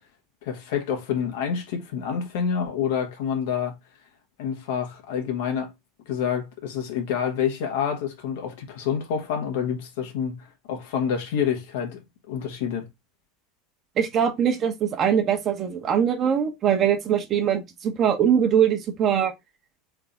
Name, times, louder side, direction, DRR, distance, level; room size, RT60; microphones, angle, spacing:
voice 1, 0.4-3.7 4.4-5.7 6.1-12.0 12.3-12.8, left 7 dB, 65° left, 1.4 m, -28 dB
voice 2, 14.0-19.3, right 8 dB, 35° right, 1.1 m, -22 dB
3.9 x 3.7 x 3.6 m
figure-of-eight pair, 80°, 0 cm